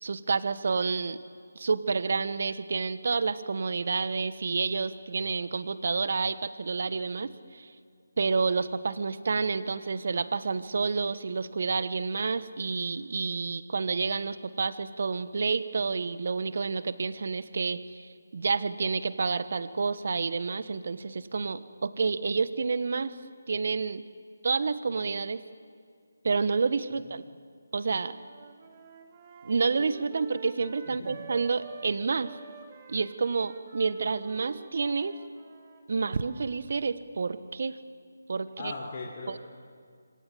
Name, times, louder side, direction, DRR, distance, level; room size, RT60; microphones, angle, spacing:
voice 1, 0.0-1.2 1.5-7.7 8.2-18.1 18.3-23.1 23.5-24.0 24.4-25.4 26.2-27.2 27.7-28.2 29.4-32.3 32.9-35.2 35.9-37.8 38.3-38.7 39.3-39.4, right 4 dB, 55° right, 14 dB, 1.3 m, -29 dB
sound 1, 28.1-31.9 32.2-36.6, right 7 dB, 30° right, 2.4 m, -48 dB
voice 2, 38.6-39.4, left 3 dB, 35° left, -2 dB, 3.6 m, -39 dB
26.5 x 25.5 x 7.7 m, 2.1 s
figure-of-eight pair, 155°, 0 cm